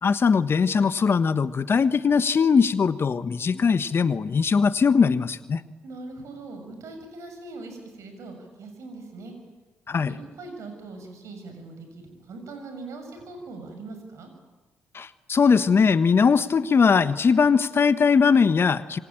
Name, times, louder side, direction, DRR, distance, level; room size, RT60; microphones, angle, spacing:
voice 1, 0.0-5.6 9.9-10.2 14.9-19.0, left 5 dB, 45° left, 13 dB, 1.3 m, -20 dB
voice 2, 5.8-9.3 10.1-14.3, right 3 dB, 65° right, 6 dB, 7.1 m, -41 dB
26.5 x 22.5 x 8.9 m, 1.2 s
hypercardioid pair, 45°, 5 cm